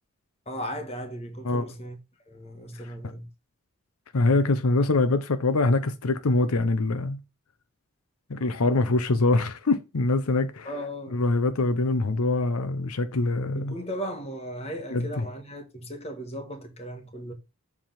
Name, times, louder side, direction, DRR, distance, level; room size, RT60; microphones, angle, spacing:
voice 1, 0.4-2.0 2.3-3.3 10.6-11.2 13.5-17.3, equal, 30° left, 1.4 m, -36 dB
voice 2, 4.1-7.2 8.3-10.7 11.1-13.8 14.9-15.1, left 2 dB, 85° left, 0.7 m, -24 dB
7.5 x 3.6 x 5.7 m
head